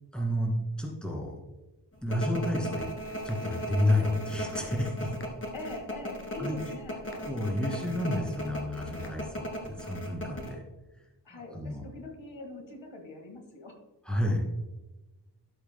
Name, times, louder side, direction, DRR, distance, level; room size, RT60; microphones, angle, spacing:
voice 1, 0.1-1.4 2.0-2.9 3.2-5.2 6.4-6.6 7.2-10.6 11.3-11.8 14.0-14.4, left 1 dB, ahead, -2 dB, 2.3 m, -30 dB
sound 1, 2.1-10.5, equal, 30° left, 1.7 m, -36 dB
voice 2, 5.5-7.1 11.3-13.8, left 2 dB, 85° left, 3 dB, 1.7 m, -43 dB
12.0 x 7.9 x 2.2 m, 1.1 s
wide cardioid pair, 130°, 43 cm